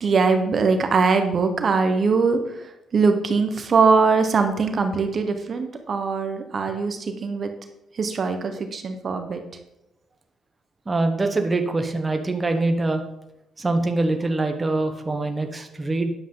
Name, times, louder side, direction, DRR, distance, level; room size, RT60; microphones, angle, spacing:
voice 1, 0.0-7.5 7.9-9.4, right 4 dB, 45° right, 6 dB, 1.0 m, -22 dB
voice 2, 10.9-13.0 13.6-16.1, right 2 dB, 20° right, 5 dB, 1.0 m, -24 dB
10.0 x 7.2 x 3.8 m, 0.86 s
cardioid pair, 90°, 0 cm